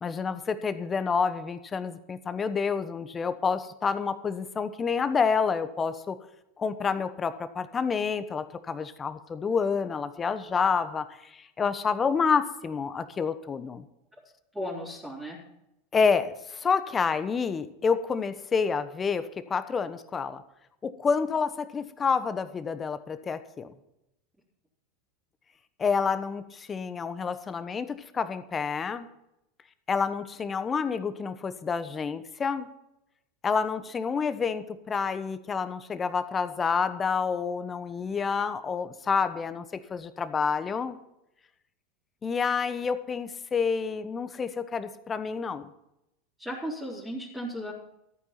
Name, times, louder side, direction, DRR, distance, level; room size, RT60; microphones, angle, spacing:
voice 1, 0.0-6.2 6.6-13.8 15.9-20.4 20.8-23.7 25.8-29.1 29.9-32.7 33.4-41.0 42.2-45.7, left 5 dB, 25° left, 12 dB, 1.1 m, -28 dB
voice 2, 14.5-15.4 46.4-47.7, equal, 10° right, -5 dB, 4.0 m, -35 dB
14.0 x 9.2 x 6.0 m, 0.85 s
hypercardioid pair, 85°, 0 cm